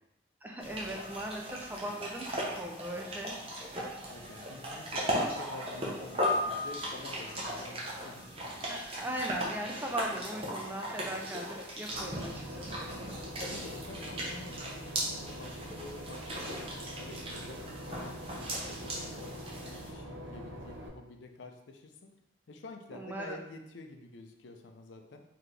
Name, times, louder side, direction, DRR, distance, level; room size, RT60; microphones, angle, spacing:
voice 1, 0.4-3.4 8.7-12.9 22.9-23.4, right 1 dB, 10° right, 1 dB, 0.3 m, -39 dB
sound 1, 0.6-19.9, equal, 30° right, 0.7 m, -37 dB
voice 2, 4.1-8.4 13.4-16.6 17.0-22.1 22.5-25.2, left 3 dB, 70° left, 5 dB, 0.4 m, -49 dB
Boat Water vehicle / Engine, 11.9-20.9, equal, 85° right, 0.7 m, -44 dB
4.0 x 2.8 x 3.3 m, 0.84 s
head